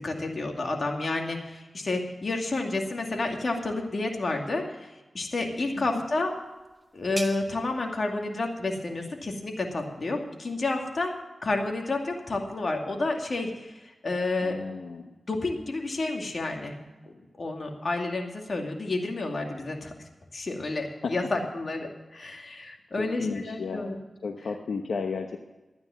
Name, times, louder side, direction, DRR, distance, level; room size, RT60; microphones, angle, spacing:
voice 1, 0.0-6.4 6.9-11.1 11.4-14.6 15.3-19.9 20.3-23.9, left 2 dB, 55° left, 2 dB, 2.5 m, -30 dB
sound 1, 5.8-11.2, right 1 dB, 20° right, 1.6 m, -46 dB
voice 2, 14.4-15.1 21.0-21.1 23.0-23.9 24.2-25.4, left 4 dB, 85° left, 4 dB, 0.9 m, -33 dB
13.0 x 9.5 x 7.1 m, 1.1 s
cardioid pair, 55°, 0 cm